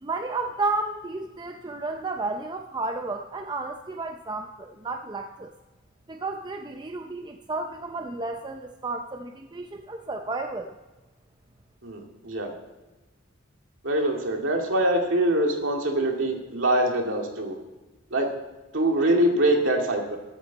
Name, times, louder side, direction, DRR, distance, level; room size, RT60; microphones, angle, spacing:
voice 1, 0.0-5.5 6.1-10.7, right 3 dB, 20° right, 5 dB, 0.5 m, -32 dB
voice 2, 11.8-12.5 13.8-17.6 18.1-18.3 18.7-20.2, right 1 dB, 60° right, 1 dB, 2.3 m, -24 dB
14.0 x 13.0 x 4.0 m, 1.1 s
head